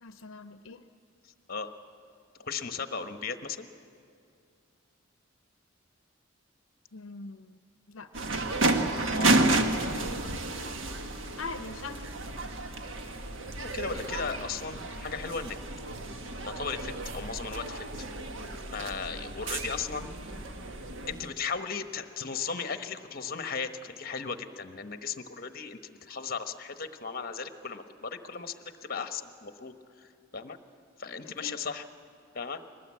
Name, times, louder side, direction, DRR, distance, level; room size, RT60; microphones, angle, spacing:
voice 1, 0.0-0.9 6.9-7.6 7.9-8.1 11.4-12.1 31.2-31.6, left 4 dB, 80° left, 10 dB, 0.6 m, -42 dB
voice 2, 2.4-3.7 9.1-9.4 13.6-15.6 16.4-17.9 18.7-20.1 21.1-30.6 31.0-31.8 32.3-32.6, left 5 dB, 45° left, 8 dB, 1.1 m, -36 dB
sound 1, 8.1-21.3, right 2 dB, 75° right, 1.5 m, -31 dB
21.5 x 19.0 x 8.4 m, 2.4 s
head